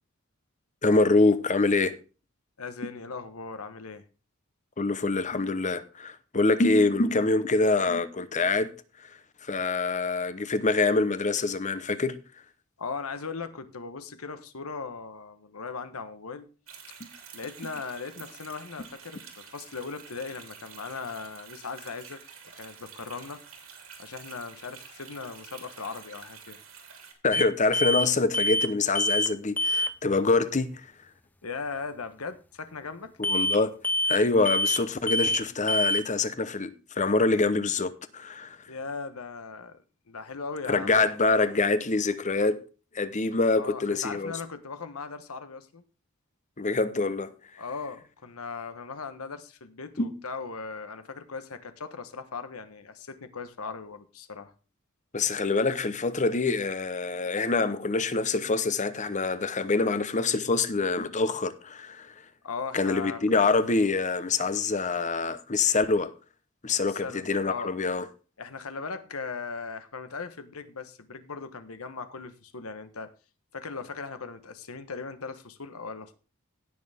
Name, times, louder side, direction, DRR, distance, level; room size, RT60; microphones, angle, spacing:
voice 1, 0.8-1.9 4.8-8.7 9.5-12.2 27.2-30.7 33.2-33.8 34.1-38.6 40.7-42.6 42.9-44.3 46.6-47.3 50.0-50.1 55.1-62.1 62.7-66.1 66.6-68.1, left 3 dB, 35° left, 0.9 m, -25 dB
voice 2, 2.6-4.0 12.8-16.5 17.3-22.2 22.6-23.4 24.0-26.6 31.4-33.1 38.7-39.8 40.1-41.1 43.5-45.8 47.6-54.5 62.4-63.5 66.8-67.7 68.4-73.1 73.5-76.1, left 4 dB, 85° left, 1.2 m, -38 dB
sound 1, 16.7-27.1, right 7 dB, 80° right, 3.4 m, -48 dB
sound 2, 27.3-27.5 27.7-28.1 28.3-28.7 28.9-29.3 29.6-29.9 33.2-33.6 33.8-34.2 34.5-34.8 35.1-35.4 35.7-36.0, left 1 dB, 10° left, 0.5 m, -25 dB
17.0 x 6.6 x 3.6 m
head